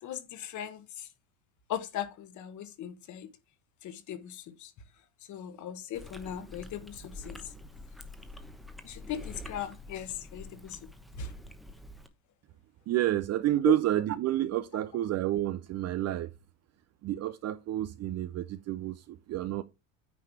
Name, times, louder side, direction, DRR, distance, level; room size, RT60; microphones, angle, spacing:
voice 1, 0.0-1.1 1.7-3.3 3.8-4.7 5.3-7.5 8.8-10.8 11.2-11.3 13.6-13.8, left 10 dB, 45° left, 1.4 m, -38 dB
Chewing mastication, 5.9-12.1, left 2 dB, ahead, 0.9 m, -47 dB
voice 2, 12.9-16.3 17.0-19.6, right 13 dB, 40° right, 0.6 m, -29 dB
9.5 x 3.2 x 5.9 m
supercardioid pair, 115°, 41 cm